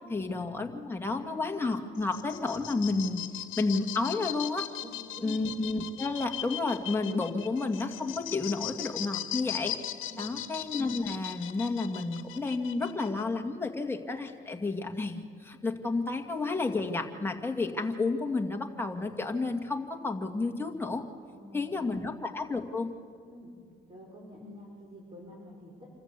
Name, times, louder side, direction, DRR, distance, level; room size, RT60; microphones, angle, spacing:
voice 1, 0.1-3.3 3.6-4.7 5.2-9.7 10.2-21.0 21.5-22.9, left 3 dB, 10° left, 2 dB, 2.1 m, -31 dB
sound 1, 2.0-13.2, left 13 dB, 85° left, 0.9 m, -39 dB
voice 2, 4.8-5.4 10.0-10.4 21.3-22.1 23.3-23.5 23.9-25.9, equal, 25° right, -2 dB, 5.3 m, -48 dB
27.0 x 14.0 x 8.4 m, 2.2 s
cardioid pair, 90°, 20 cm